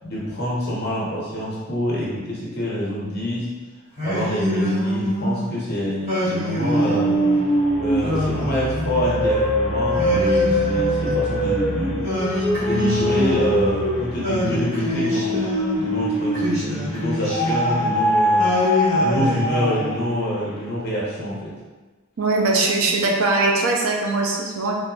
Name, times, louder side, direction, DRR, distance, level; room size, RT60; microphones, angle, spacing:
voice 1, 0.0-3.5 4.0-7.2 7.8-12.3 12.7-15.4 15.8-18.6 19.0-21.5, left 1 dB, 45° left, -6 dB, 0.9 m, -26 dB
Singing, 4.0-5.4 6.1-7.4 8.0-9.3 10.0-11.5 12.0-13.8 14.2-15.8 16.3-18.0 18.4-20.0, left 1 dB, 30° right, 1.4 m, -25 dB
sound 1, 6.6-16.8 17.3-20.0, equal, 25° left, 0.5 m, -23 dB
voice 2, 22.2-24.7, right 3 dB, 75° right, 0 dB, 0.5 m, -21 dB
3.8 x 2.4 x 2.3 m, 1.3 s
head